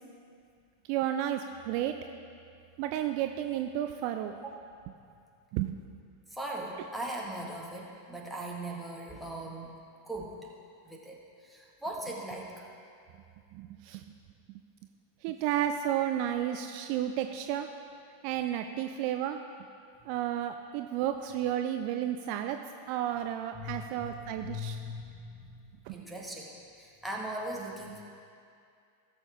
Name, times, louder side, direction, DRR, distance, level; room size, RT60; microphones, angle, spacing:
voice 1, 0.9-2.0 2.8-4.4 5.5-5.8 13.5-14.0 15.2-17.7 18.2-19.4 20.1-22.6 22.9-24.8 25.9-26.0, right 11 dB, 45° right, 7 dB, 0.4 m, -32 dB
voice 2, 6.3-9.7 10.1-10.4 10.9-12.7 23.5-25.6 25.9-28.0, right 1 dB, ahead, -2 dB, 1.7 m, -39 dB
17.0 x 7.1 x 3.7 m, 2.4 s
figure-of-eight pair, 90°, 0 cm